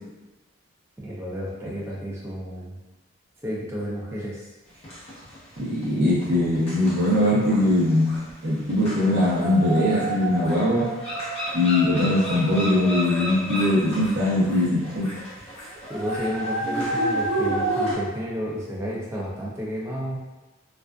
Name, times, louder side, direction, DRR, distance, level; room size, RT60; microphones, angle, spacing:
voice 1, 1.0-2.8 3.4-4.5 15.9-20.2, equal, 10° right, -5 dB, 0.4 m, -31 dB
sound 1, 4.8-5.8 6.2-17.9, right 1 dB, 30° left, 0.7 m, -30 dB
voice 2, 5.6-10.9 11.5-15.1, left 1 dB, 55° right, -7 dB, 0.7 m, -21 dB
2.4 x 2.3 x 2.2 m, 1.1 s
head